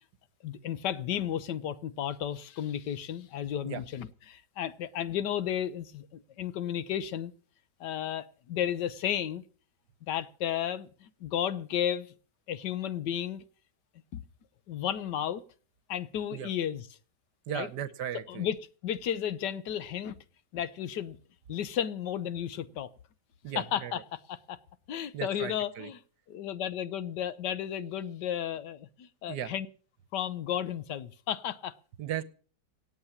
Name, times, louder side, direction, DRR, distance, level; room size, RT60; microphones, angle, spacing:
voice 1, 0.4-7.3 7.8-9.4 10.1-12.1 12.5-13.4 14.1-14.2 14.7-15.4 15.9-16.8 17.5-17.7 18.3-20.2 20.5-21.2 21.5-22.9 23.6-24.0 24.3-24.6 24.9-26.0 26.3-29.7 30.1-31.7, left 10 dB, 75° left, 1.5 m, -33 dB
voice 2, 17.5-18.5 23.4-24.0 25.1-25.9 29.3-29.5 32.0-32.2, right 10 dB, 70° right, 1.4 m, -36 dB
18.0 x 7.7 x 7.2 m
omnidirectional pair, 1.9 m